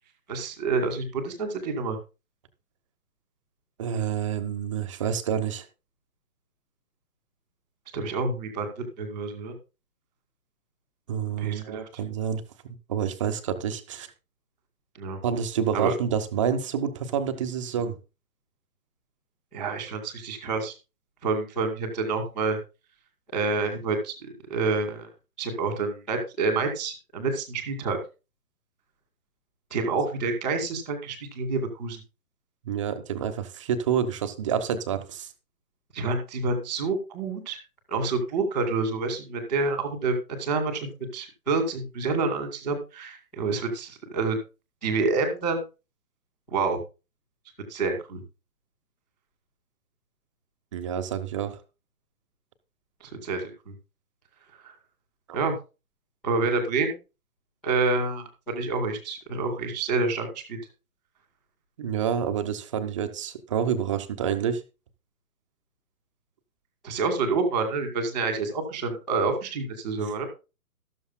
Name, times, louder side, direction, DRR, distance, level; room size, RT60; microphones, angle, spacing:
voice 1, 0.3-2.0 7.9-9.5 11.4-11.8 15.0-15.2 15.7-15.9 19.5-20.7 21.2-22.6 23.3-25.1 25.4-28.0 29.7-32.0 35.9-37.6 37.9-44.4 44.8-45.6 46.5-46.8 47.7-48.2 53.0-53.7 55.3-55.5 56.2-56.9 57.6-60.6 66.8-70.2, right 3 dB, ahead, -8 dB, 0.6 m, -28 dB
voice 2, 3.8-5.7 11.1-14.1 15.2-18.0 32.6-35.3 50.7-51.6 55.3-55.4 61.8-64.6, right 8 dB, 20° right, 7 dB, 0.9 m, -28 dB
13.5 x 12.5 x 2.2 m, 0.30 s
hypercardioid pair, 155°, 46 cm